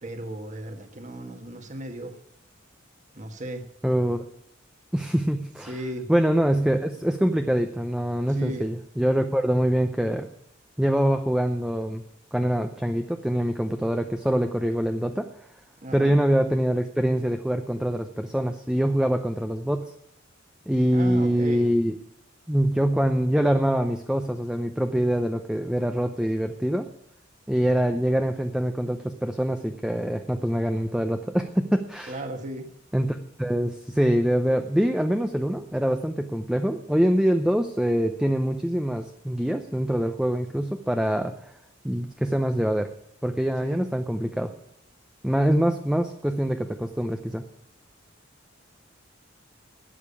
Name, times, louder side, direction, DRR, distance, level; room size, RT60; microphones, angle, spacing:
voice 1, 0.0-2.2 3.1-3.6 5.7-6.1 8.3-8.8 15.8-16.1 20.9-21.7 27.6-28.0 32.1-32.7 43.6-43.8, right 1 dB, 40° right, 6 dB, 1.5 m, -36 dB
voice 2, 3.8-4.2 4.9-5.8 6.1-10.3 10.8-12.0 12.3-15.3 15.9-19.9 20.7-21.9 22.5-26.9 27.5-32.2 32.9-41.3 41.8-42.9 43.2-44.5 45.2-47.4, equal, 5° right, 6 dB, 0.6 m, -24 dB
12.5 x 9.0 x 8.4 m, 0.76 s
head